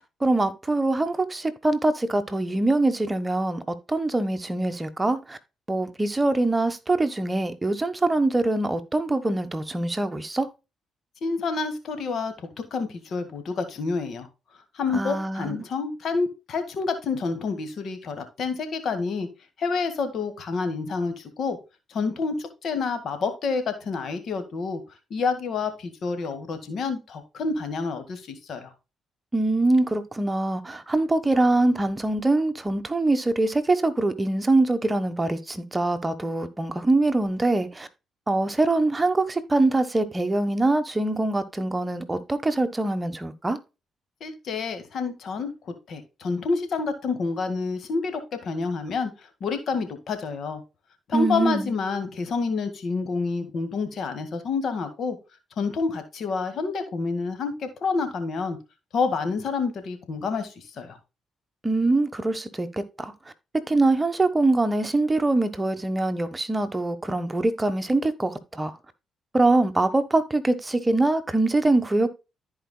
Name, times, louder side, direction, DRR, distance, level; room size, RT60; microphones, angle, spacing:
voice 1, 0.2-5.4 5.7-10.5 14.9-15.6 29.3-37.9 38.3-43.6 51.1-51.7 61.6-63.1 63.7-68.8 69.3-72.1, right 2 dB, 20° right, 1.2 m, -23 dB
voice 2, 11.2-12.3 12.7-14.3 14.7-19.3 19.6-21.6 21.9-24.8 25.1-28.7 44.2-49.1 49.4-50.6 51.1-55.2 55.6-58.6 58.9-61.0, left 4 dB, 60° left, 1.9 m, -28 dB
14.5 x 4.8 x 2.3 m
supercardioid pair, 55°, 0 cm